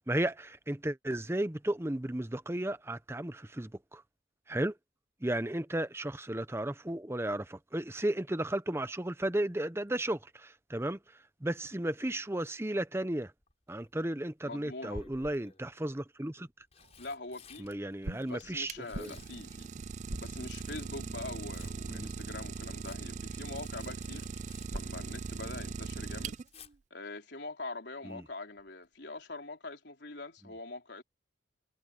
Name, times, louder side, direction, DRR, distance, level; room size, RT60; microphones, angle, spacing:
voice 1, 0.1-4.0 4.5-4.7 5.2-11.0 11.4-13.3 13.7-16.5 17.6-19.2 21.9-22.1 28.0-28.2, right 1 dB, 15° right, 0.8 m, -34 dB
Tearing, 13.4-13.9 14.9-15.7 16.4-20.9 21.2-25.5 25.8-26.7 28.6-28.9 29.2-29.3, left 2 dB, 35° left, 5.4 m, -55 dB
voice 2, 14.4-15.1 17.0-17.7 18.2-19.7 20.2-24.3 24.7-26.4 26.9-31.0, left 3 dB, 65° left, 4.0 m, -44 dB
sound 1, 16.8-17.4 18.0-21.2 23.9-25.4, right 1 dB, 80° right, 1.5 m, -45 dB
Idling, 18.4-26.7, right 5 dB, 40° right, 0.3 m, -40 dB
head